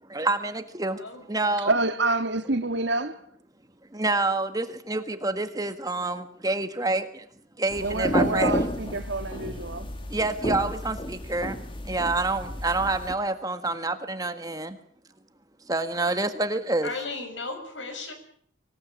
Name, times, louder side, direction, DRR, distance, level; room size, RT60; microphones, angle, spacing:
voice 1, 0.1-1.0 1.3-1.7 3.9-7.2 7.6-8.5 10.1-11.6 11.8-14.8 15.7-16.9, right 2 dB, 20° right, 1.6 m, -27 dB
voice 2, 1.6-3.2 7.8-9.9, right 2 dB, 65° right, 2.1 m, -27 dB
sound 1, 7.7-13.1, equal, 25° left, 2.1 m, -31 dB
voice 3, 16.8-18.1, left 3 dB, 75° left, 6.4 m, -35 dB
25.0 x 17.5 x 8.6 m
head